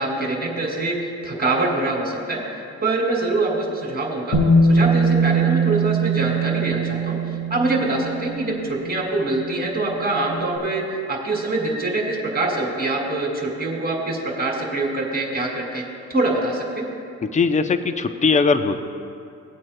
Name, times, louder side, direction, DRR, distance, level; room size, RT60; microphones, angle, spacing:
voice 1, 0.0-4.4 4.7-15.8 16.1-16.8, right 2 dB, 30° right, 0 dB, 2.5 m, -24 dB
Bass guitar, 4.3-10.4, right 2 dB, 60° left, 1.7 m, -22 dB
voice 2, 17.2-18.8, left 4 dB, 25° left, 9 dB, 0.6 m, -20 dB
19.5 x 8.5 x 2.2 m, 2.5 s
cardioid pair, 90°, 30 cm